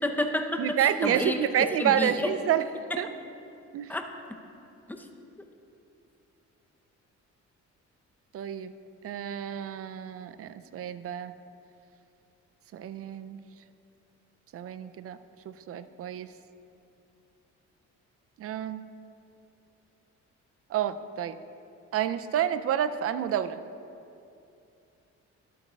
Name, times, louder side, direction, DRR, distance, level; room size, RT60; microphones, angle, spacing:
voice 1, 0.0-1.4 1.7-2.3 3.9-4.1 4.9-5.1, left 1 dB, 5° left, 4 dB, 0.6 m, -30 dB
voice 2, 0.6-2.6 3.0-3.1 3.7-3.9 8.3-8.7 9.0-11.3 12.7-13.4 14.5-15.2 15.5-16.3 18.4-18.9 20.7-21.4 21.9-23.6, right 10 dB, 50° right, 12 dB, 0.4 m, -29 dB
12.0 x 8.2 x 2.3 m, 2.7 s
cardioid pair, 90°, 30 cm